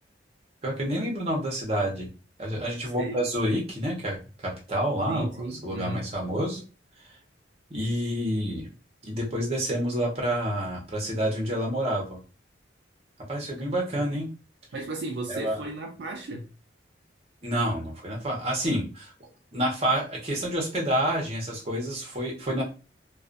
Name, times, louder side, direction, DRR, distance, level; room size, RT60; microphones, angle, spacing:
voice 1, 0.6-2.1 2.4-6.6 7.7-8.7 9.0-12.2 13.3-14.3 15.3-15.6 17.4-19.1 19.5-22.6, equal, 35° right, 0.8 m, -28 dB
voice 2, 5.1-6.1 13.6-13.8 14.1-14.2 14.7-16.5, right 2 dB, 60° right, 0.4 m, -35 dB
2.3 x 2.3 x 2.4 m
head